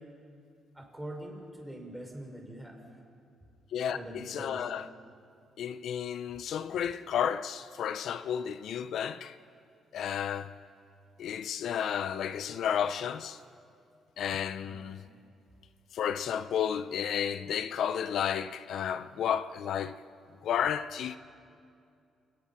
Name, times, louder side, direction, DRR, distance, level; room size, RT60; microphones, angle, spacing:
voice 1, 0.7-2.8 3.9-4.7 14.6-14.9, right 1 dB, 5° right, 5.5 m, -43 dB
voice 2, 3.7-4.9 5.6-9.4 9.9-10.5 11.2-13.4 14.2-15.1 15.9-20.0 20.4-21.2, left 8 dB, 70° left, 0.6 m, -32 dB
28.0 x 19.5 x 5.9 m
cardioid pair, 90°, 0 cm